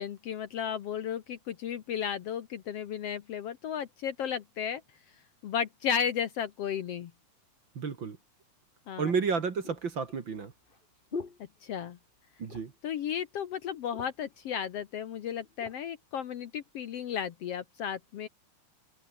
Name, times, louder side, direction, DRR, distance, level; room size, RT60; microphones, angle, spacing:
voice 1, 0.0-4.8 5.4-7.1 8.9-9.1 11.6-12.0 12.8-18.3, left 8 dB, 60° left, 1.9 m, -34 dB
voice 2, 7.8-8.2 9.0-10.5 12.4-12.7, right 5 dB, 40° right, 2.5 m, -31 dB
sound 1, 9.0-12.1 12.4-12.9 13.3-13.4 13.7-14.4 15.1-15.8 16.4-16.6, left 4 dB, 30° left, 1.0 m, -44 dB
omnidirectional pair, 3.5 m